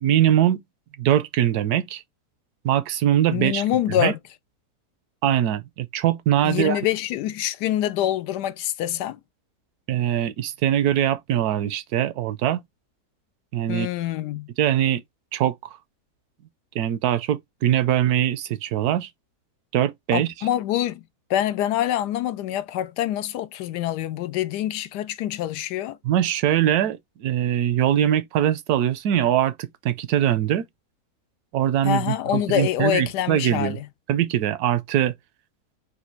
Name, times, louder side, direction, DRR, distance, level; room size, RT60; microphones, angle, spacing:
voice 1, 0.0-0.6 1.0-2.0 2.6-3.7 4.0-4.1 5.2-6.8 9.9-12.6 13.5-13.9 14.6-15.0 15.3-15.8 16.7-19.1 19.7-20.3 26.0-30.7 31.5-33.8 34.1-35.1, right 11 dB, 75° right, 1.0 m, -22 dB
voice 2, 3.3-4.2 6.4-9.2 13.7-14.5 20.1-21.0 21.3-26.0 31.8-33.8, left 12 dB, 90° left, 1.2 m, -25 dB
4.2 x 2.4 x 4.3 m
omnidirectional pair, 1.7 m